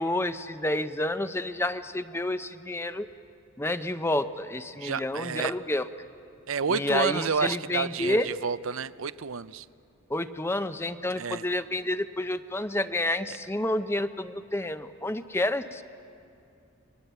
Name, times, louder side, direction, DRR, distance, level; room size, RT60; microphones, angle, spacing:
voice 1, 0.0-3.1 3.6-5.9 6.7-8.3 10.1-15.8, left 1 dB, 10° left, 0.6 m, -29 dB
voice 2, 4.8-5.5 6.5-9.7 11.2-11.4, right 5 dB, 75° right, 0.6 m, -30 dB
29.5 x 22.5 x 8.0 m
head